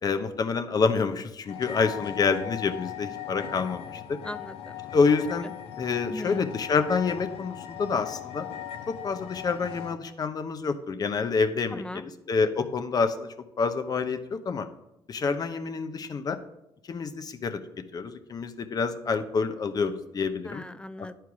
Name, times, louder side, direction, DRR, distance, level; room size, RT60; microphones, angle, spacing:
voice 1, 0.0-4.2 4.9-8.5 8.9-12.0 12.3-13.3 13.6-14.7 15.1-16.4 16.9-17.6 17.9-20.6, left 5 dB, 40° left, 8 dB, 0.7 m, -27 dB
sound 1, 1.5-10.0, left 11 dB, 75° left, 0.8 m, -39 dB
voice 2, 4.2-4.8 6.1-6.5 11.7-12.0 20.4-21.2, left 2 dB, 10° left, 13 dB, 0.4 m, -39 dB
9.9 x 4.5 x 4.8 m, 0.86 s
cardioid pair, 90°, 10 cm